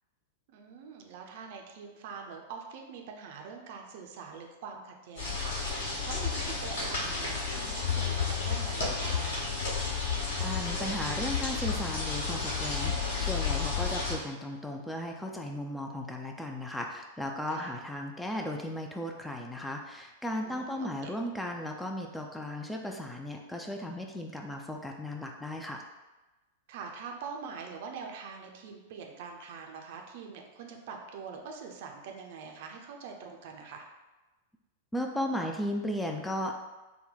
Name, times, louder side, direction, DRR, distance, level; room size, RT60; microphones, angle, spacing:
voice 1, 0.5-9.5 17.5-17.7 20.4-21.1 26.7-33.8, right 5 dB, 50° right, 2 dB, 0.5 m, -44 dB
sound 1, 5.2-14.2, left 5 dB, 55° left, 1.2 m, -31 dB
voice 2, 10.4-25.8 34.9-36.5, left 1 dB, 5° left, 2 dB, 0.3 m, -36 dB
3.9 x 2.2 x 3.8 m, 1.1 s
figure-of-eight pair, 95°, 0 cm